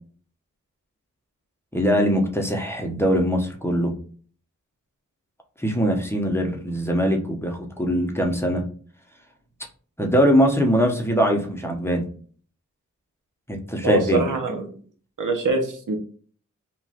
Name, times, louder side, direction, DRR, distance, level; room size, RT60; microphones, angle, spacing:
voice 1, 1.7-3.9 5.6-8.6 10.0-12.1 13.5-14.2, equal, 10° left, 2 dB, 0.6 m, -22 dB
voice 2, 13.8-14.8 15.2-16.0, right 3 dB, 80° right, 4 dB, 0.7 m, -23 dB
2.9 x 2.2 x 2.7 m, 0.43 s
wide cardioid pair, 50°, 31 cm